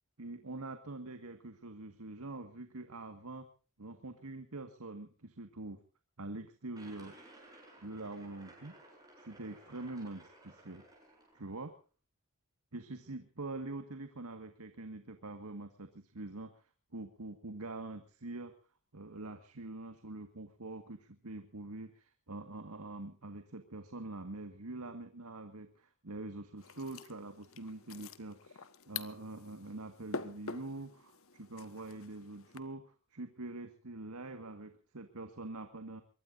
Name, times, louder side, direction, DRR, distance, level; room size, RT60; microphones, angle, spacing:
voice 1, 0.2-3.5 3.8-5.8 6.2-7.2 7.8-8.8 9.3-10.8 11.3-11.7 12.7-16.5 16.9-18.5 18.9-36.0, right 2 dB, 90° right, 7 dB, 1.8 m, -45 dB
sound 1, 6.7-11.7, right 2 dB, 15° right, 7.7 m, -57 dB
sound 2, 26.6-32.6, left 4 dB, 65° left, 1.3 m, -47 dB
24.0 x 22.0 x 2.6 m, 0.37 s
head